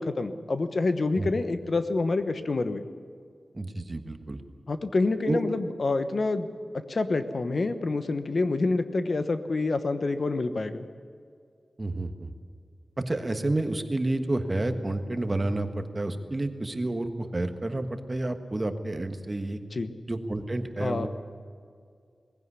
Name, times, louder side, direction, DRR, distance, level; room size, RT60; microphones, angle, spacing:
voice 1, 0.0-2.8 4.7-10.9 19.7-19.9 20.8-21.1, left 3 dB, 55° left, 9 dB, 1.1 m, -27 dB
voice 2, 3.5-4.4 5.3-5.4 11.8-12.3 13.1-19.6 20.1-21.1, right 2 dB, 30° right, 7 dB, 1.4 m, -30 dB
20.0 x 16.0 x 9.7 m, 2.2 s
wide cardioid pair, 110°, 0 cm